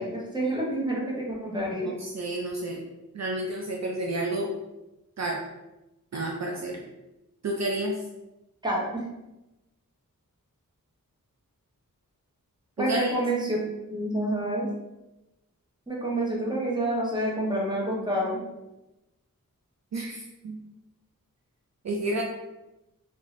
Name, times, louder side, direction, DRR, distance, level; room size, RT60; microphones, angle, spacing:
voice 1, 0.0-1.9 8.6-9.0 12.8-13.6 13.9-14.7 15.9-18.4, right 1 dB, 15° right, -4 dB, 0.9 m, -28 dB
voice 2, 1.5-2.8 3.1-4.5 5.2-5.4 6.1-6.9 7.4-8.0 12.8-13.1 19.9-20.6 21.8-22.2, right 2 dB, 55° right, -1 dB, 0.4 m, -30 dB
2.7 x 2.5 x 3.0 m, 0.96 s
wide cardioid pair, 60°, 34 cm